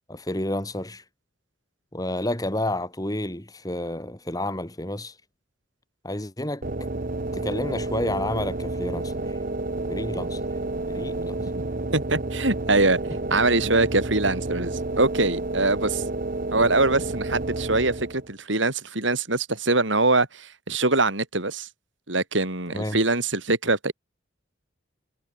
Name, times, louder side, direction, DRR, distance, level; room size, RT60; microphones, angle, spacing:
voice 1, 0.1-1.0 1.9-5.1 6.0-6.6 7.3-9.4 9.9-10.4 10.9-11.4 22.7-23.0, left 1 dB, 20° left, 2.6 m, -30 dB
sound 1, 6.6-18.3, right 2 dB, 45° right, 1.1 m, -30 dB
voice 2, 11.2-11.5 11.9-13.0 13.3-16.0 16.5-21.7 22.1-23.9, right 2 dB, 70° right, 5.4 m, -23 dB
head